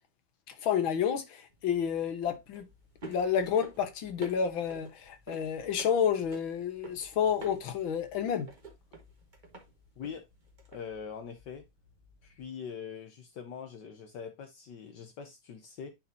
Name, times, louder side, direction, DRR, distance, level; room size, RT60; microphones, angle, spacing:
voice 1, 0.5-2.6 3.0-8.5, left 8 dB, 85° left, 1.9 m, -30 dB
sound 1, 1.5-12.4, right 3 dB, 25° right, 1.4 m, -51 dB
voice 2, 10.0-10.3 10.7-11.6 12.2-15.9, left 7 dB, 70° left, 1.4 m, -43 dB
10.0 x 4.2 x 2.7 m
omnidirectional pair, 2.1 m